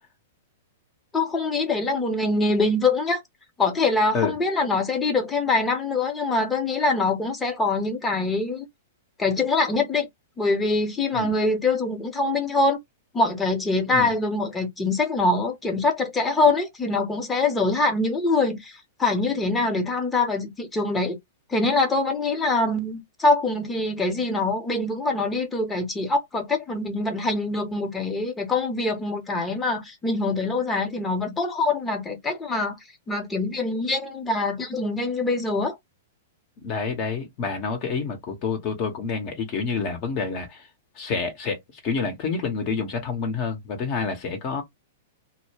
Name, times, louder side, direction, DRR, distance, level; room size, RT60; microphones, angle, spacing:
voice 1, 1.1-3.2 3.6-8.7 9.2-10.1 10.4-12.8 13.1-21.2 21.5-32.8 33.1-35.8, left 3 dB, 15° left, 0.8 m, -24 dB
voice 2, 36.6-40.7 41.0-41.6 41.8-44.6, left 5 dB, 45° left, 0.9 m, -28 dB
2.2 x 2.1 x 3.2 m
hypercardioid pair, 115°, 0 cm